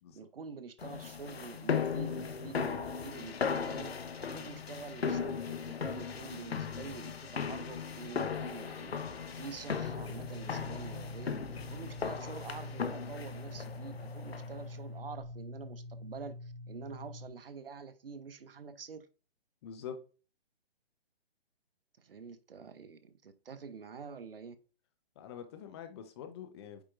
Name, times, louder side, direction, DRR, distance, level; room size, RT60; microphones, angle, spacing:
voice 1, 0.1-3.9 4.2-9.0 9.3-11.4 11.7-19.1 22.0-24.6, right 5 dB, 65° right, 1.0 m, -47 dB
sound 1, 0.8-14.7, left 6 dB, 75° left, 0.9 m, -37 dB
sound 2, 9.8-17.3, left 2 dB, 50° left, 2.4 m, -45 dB
voice 2, 19.6-20.0 25.2-26.8, left 8 dB, 25° left, 0.8 m, -45 dB
8.6 x 4.5 x 2.5 m
figure-of-eight pair, 140°, 31 cm